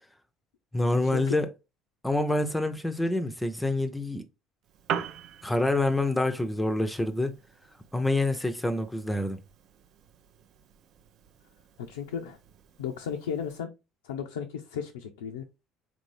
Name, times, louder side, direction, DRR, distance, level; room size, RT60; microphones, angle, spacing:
voice 1, 0.7-1.5 2.0-4.3 5.4-7.3 7.9-9.4, left 2 dB, 10° left, 0.5 m, -27 dB
Piano, 4.6-13.6, right 8 dB, 60° right, 0.4 m, -42 dB
voice 2, 11.9-12.4 12.8-13.7 14.0-15.4, left 7 dB, 85° left, 0.3 m, -34 dB
3.6 x 2.6 x 3.2 m
hypercardioid pair, 65°, 0 cm